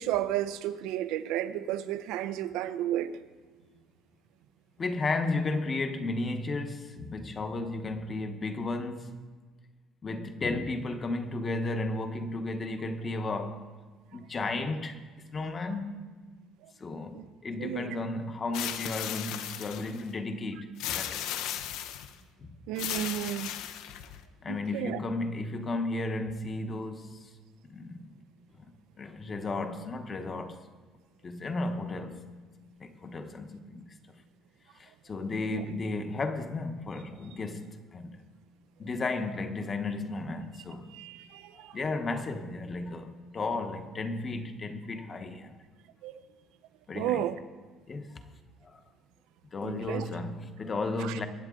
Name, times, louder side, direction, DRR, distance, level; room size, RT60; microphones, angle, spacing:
voice 1, 0.0-3.1 17.1-17.2 17.6-18.0 22.7-23.5 24.5-25.0 35.5-35.6 40.9-41.7 46.0-46.1 46.9-47.4 49.6-50.0 51.0-51.1, right 12 dB, 80° right, 0.8 m, -32 dB
voice 2, 4.8-9.2 10.0-13.7 14.1-15.0 15.3-16.1 16.8-21.4 22.4-22.6 24.4-27.3 27.6-28.1 29.0-30.7 31.2-32.3 32.8-33.9 34.8-38.2 38.8-40.9 41.7-45.6 46.9-47.3 47.9-48.2 48.7-48.8 49.5-51.3, left 2 dB, 25° left, 1.0 m, -34 dB
sound 1, 18.5-20.0 20.8-22.1 22.8-24.2, left 11 dB, 75° left, 0.9 m, -36 dB
23.0 x 8.9 x 3.8 m
cardioid pair, 155°, 0 cm